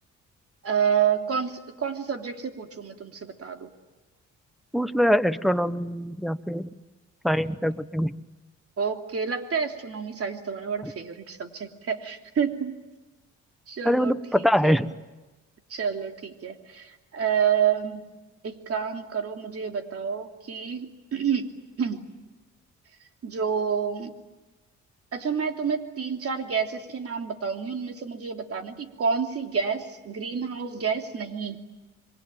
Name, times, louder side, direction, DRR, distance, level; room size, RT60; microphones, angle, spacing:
voice 1, 0.6-3.7 8.8-12.7 13.7-14.8 15.7-18.1 18.4-21.5 21.8-22.1 23.2-24.1 25.1-31.6, right 7 dB, 50° right, 5 dB, 3.0 m, -29 dB
voice 2, 4.7-6.7 7.2-8.1 13.9-14.9, equal, ahead, 10 dB, 1.2 m, -23 dB
27.0 x 23.5 x 9.0 m, 1.1 s
cardioid pair, 90°, 30 cm